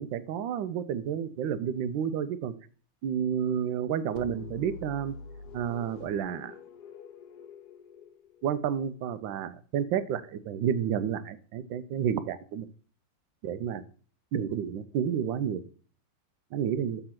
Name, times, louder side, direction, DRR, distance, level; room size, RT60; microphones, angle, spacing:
voice 1, 0.0-2.5 3.0-5.1 5.5-6.5 8.4-12.7 13.4-13.8 14.3-15.6 16.5-17.0, right 8 dB, 80° right, 14 dB, 1.3 m, -30 dB
sound 1, 4.2-8.9, left 4 dB, 65° left, 1.2 m, -46 dB
6.9 x 4.2 x 5.8 m, 0.42 s
omnidirectional pair, 2.1 m